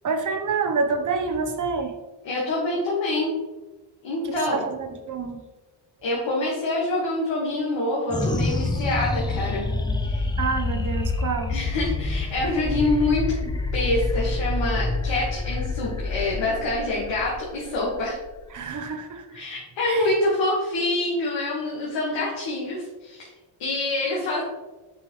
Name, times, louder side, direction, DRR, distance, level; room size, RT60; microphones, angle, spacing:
voice 1, 0.0-2.0 4.2-5.4 10.4-11.5 18.5-19.4 19.8-20.2, right 4 dB, 40° right, 6 dB, 0.9 m, -28 dB
voice 2, 2.2-3.3 4.0-4.6 6.0-9.7 10.1-10.3 11.5-18.2 19.4-23.3 23.6-24.4, left 2 dB, 70° left, -5 dB, 1.7 m, -26 dB
sound 1, 8.1-18.8, left 2 dB, 10° left, 0.4 m, -27 dB
6.9 x 4.6 x 3.1 m, 1.1 s
cardioid pair, 115°, 45 cm